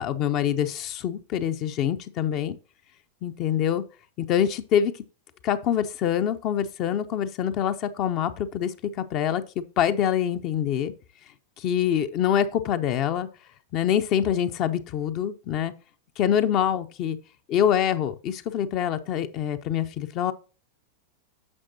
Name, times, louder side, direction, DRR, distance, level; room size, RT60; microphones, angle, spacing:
voice 1, 0.0-2.6 3.2-3.8 4.2-4.9 5.4-10.9 11.6-13.3 13.7-15.7 16.2-17.2 17.5-20.3, left 9 dB, 40° left, 0.7 m, -25 dB
9.8 x 6.6 x 2.7 m
figure-of-eight pair, 90°, 0 cm